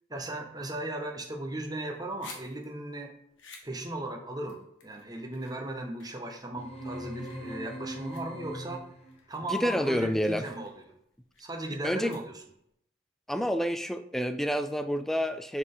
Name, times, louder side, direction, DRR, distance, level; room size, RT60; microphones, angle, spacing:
voice 1, 0.1-3.1 3.6-8.8 9.3-10.8 11.4-12.4, right 1 dB, 20° right, 3 dB, 0.9 m, -37 dB
sound 1, 1.8-12.7, left 4 dB, 85° left, 1.3 m, -55 dB
sound 2, 6.6-9.2, equal, 35° left, 1.0 m, -40 dB
voice 2, 9.5-10.4 11.8-12.1 13.3-15.6, equal, ahead, 9 dB, 0.4 m, -28 dB
7.2 x 4.1 x 3.8 m, 0.73 s
head